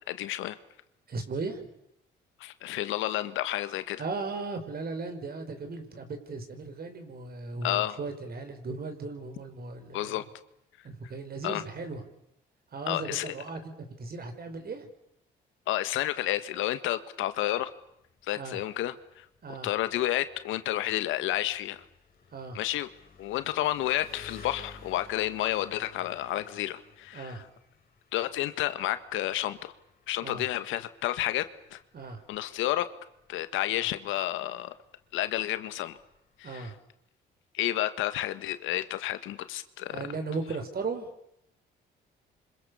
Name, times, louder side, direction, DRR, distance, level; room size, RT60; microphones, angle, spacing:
voice 1, 0.1-0.6 2.4-4.0 7.6-8.0 9.9-10.2 11.4-11.6 12.9-13.3 15.7-17.7 18.2-19.2 19.6-21.8 22.5-22.9 23.2-27.4 28.1-29.7 30.1-31.8 32.3-32.9 33.3-34.7 35.1-36.0 36.4-36.7 37.5-40.0, left 14 dB, 85° left, 12 dB, 1.6 m, -30 dB
voice 2, 1.1-1.7 4.0-10.3 10.8-12.0 12.7-14.9 18.3-18.6 19.4-19.7 22.3-22.6 27.1-27.5 30.2-30.5 31.9-32.2 36.4-36.8 39.9-41.1, right 3 dB, 50° right, 7 dB, 5.6 m, -37 dB
Engine, 17.5-36.8, left 4 dB, 50° left, 6.5 m, -55 dB
28.0 x 25.5 x 7.1 m, 0.79 s
supercardioid pair, 70°, 20 cm